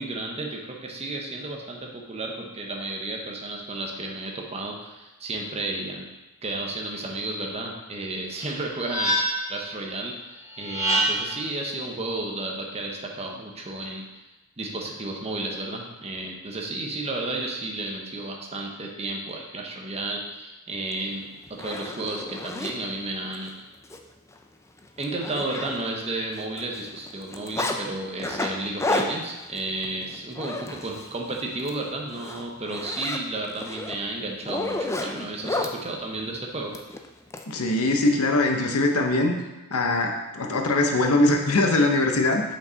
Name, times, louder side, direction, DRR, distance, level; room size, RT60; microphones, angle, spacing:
voice 1, 0.0-6.1 6.4-9.1 9.5-14.1 14.6-23.5 25.0-36.7, right 2 dB, 30° right, 0 dB, 0.9 m, -32 dB
sound 1, 8.4-9.6 10.5-11.4, right 1 dB, 15° right, 2.4 m, -26 dB
Zipper (clothing), 20.9-21.0 21.4-22.7 23.3-23.5 23.8-24.0 24.3-24.4 24.8-26.1 26.4-27.8 28.2-31.1 31.5-31.7 32.1-35.7 36.7-37.4, left 2 dB, 15° left, 0.4 m, -31 dB
voice 2, 37.5-39.3 39.7-42.4, left 2 dB, 75° left, 3 dB, 0.8 m, -22 dB
5.6 x 5.5 x 3.9 m, 1.1 s
head